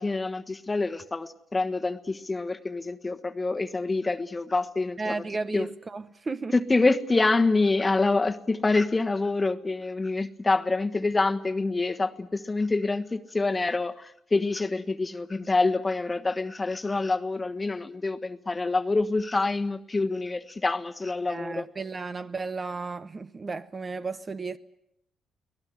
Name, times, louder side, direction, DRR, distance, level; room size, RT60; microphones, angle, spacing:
voice 1, 0.0-5.2 5.5-5.7 6.5-21.6, left 3 dB, 20° left, 1.4 m, -26 dB
voice 2, 5.0-6.5 21.2-24.6, right 3 dB, 30° right, 1.0 m, -34 dB
24.0 x 18.0 x 9.5 m
cardioid pair, 90°, 0 cm